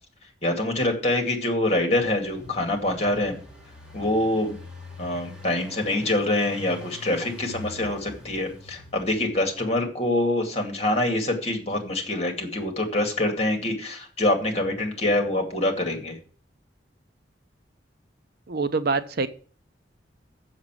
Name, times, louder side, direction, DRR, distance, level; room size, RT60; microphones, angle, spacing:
voice 1, 0.4-3.4 3.9-4.6 5.0-16.2, left 1 dB, 35° left, 3 dB, 2.4 m, -25 dB
Engine, 1.8-9.7, left 2 dB, 5° right, 2.4 m, -44 dB
voice 2, 18.5-19.3, right 4 dB, 55° right, 11 dB, 0.7 m, -25 dB
7.2 x 6.7 x 7.6 m, 0.42 s
head